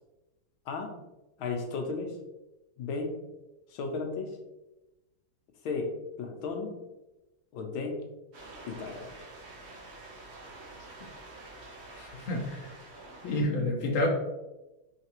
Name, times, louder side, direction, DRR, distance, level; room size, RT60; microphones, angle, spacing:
voice 1, 1.4-2.2 2.8-3.1 3.7-4.3 5.6-6.8 7.5-8.1 8.7-9.2 13.2-13.8, left 4 dB, 80° left, 3 dB, 1.5 m, -35 dB
sound 1, 8.3-13.4, right 2 dB, 55° right, 0.7 m, -48 dB
voice 2, 11.9-12.7 13.3-14.1, left 1 dB, 50° left, -1 dB, 1.0 m, -29 dB
4.7 x 3.3 x 2.9 m, 1.0 s
omnidirectional pair, 2.2 m